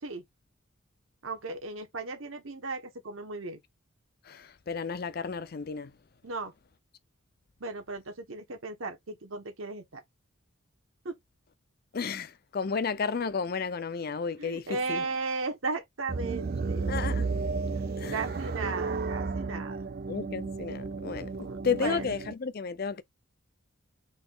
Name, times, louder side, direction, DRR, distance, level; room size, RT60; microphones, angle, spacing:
voice 1, 1.2-3.6 6.2-6.5 7.6-10.0 11.0-11.2 14.4-17.0 18.1-19.8 21.4-22.1, right 3 dB, 70° right, 1.0 m, -36 dB
voice 2, 4.2-6.0 11.9-15.1 16.9-17.3 18.0-18.3 20.1-23.0, left 5 dB, 45° left, 0.5 m, -33 dB
sound 1, 16.1-22.3, right 4 dB, 45° right, 0.4 m, -33 dB
3.9 x 2.8 x 3.8 m
head